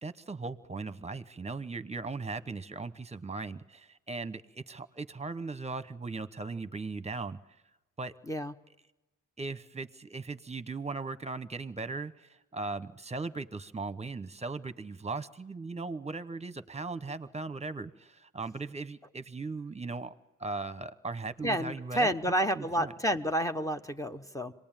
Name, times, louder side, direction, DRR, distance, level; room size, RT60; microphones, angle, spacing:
voice 1, 0.0-7.4 8.0-8.1 9.4-20.1 20.4-22.1 22.5-22.9, right 3 dB, 20° right, 14 dB, 1.1 m, -38 dB
voice 2, 21.4-24.5, equal, 10° left, 6 dB, 1.0 m, -30 dB
26.0 x 19.0 x 9.0 m, 1.1 s
wide cardioid pair, 110°, 31 cm